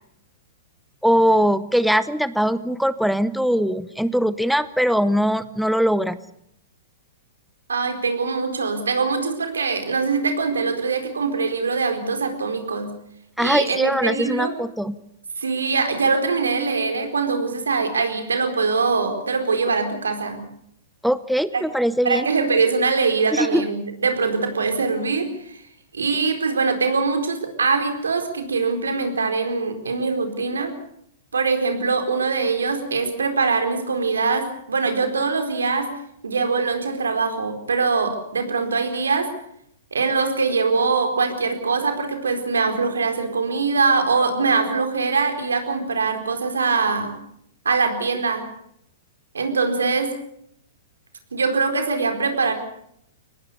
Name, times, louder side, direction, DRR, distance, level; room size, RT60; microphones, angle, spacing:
voice 1, 1.0-6.2 13.4-15.0 21.0-22.3 23.3-23.7, equal, ahead, 15 dB, 0.8 m, -21 dB
voice 2, 7.7-12.9 13.4-14.5 15.4-20.4 21.5-21.6 22.0-25.6 25.9-30.7 31.3-35.9 36.2-39.3 39.9-47.1 47.6-48.5 49.3-50.1 51.3-52.5, right 4 dB, 80° right, 6 dB, 4.3 m, -22 dB
24.0 x 19.5 x 6.9 m, 0.73 s
figure-of-eight pair, 110°, 0 cm